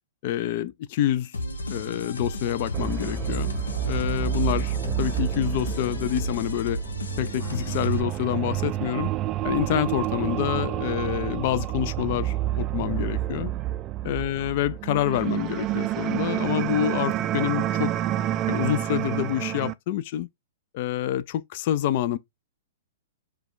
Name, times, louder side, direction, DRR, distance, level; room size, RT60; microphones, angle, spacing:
voice 1, 0.2-1.4 1.7-3.5 3.9-6.8 7.2-9.1 9.4-13.5 14.0-17.9 18.5-20.3 20.7-22.2, left 12 dB, 50° left, 0.4 m, -27 dB
sound 1, 1.3-8.0, left 1 dB, 85° left, 0.9 m, -33 dB
sound 2, 2.7-19.7, right 13 dB, 30° right, 0.3 m, -29 dB
4.7 x 2.3 x 3.7 m
hypercardioid pair, 120°, 0 cm